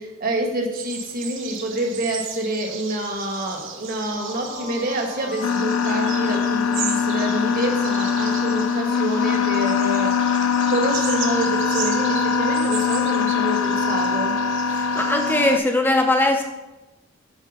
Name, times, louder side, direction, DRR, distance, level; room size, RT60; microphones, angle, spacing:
voice 1, 0.0-10.4 10.7-14.3, right 1 dB, 40° right, 1 dB, 1.5 m, -27 dB
sound 1, 0.7-15.6, right 6 dB, 60° right, 1.0 m, -36 dB
sound 2, 4.1-15.3, left 5 dB, 55° left, 1.9 m, -38 dB
sound 3, 5.4-15.6, left 6 dB, 75° left, 0.4 m, -22 dB
voice 2, 14.7-16.4, left 1 dB, 10° left, 3 dB, 0.9 m, -20 dB
8.4 x 4.4 x 5.8 m, 1.0 s
head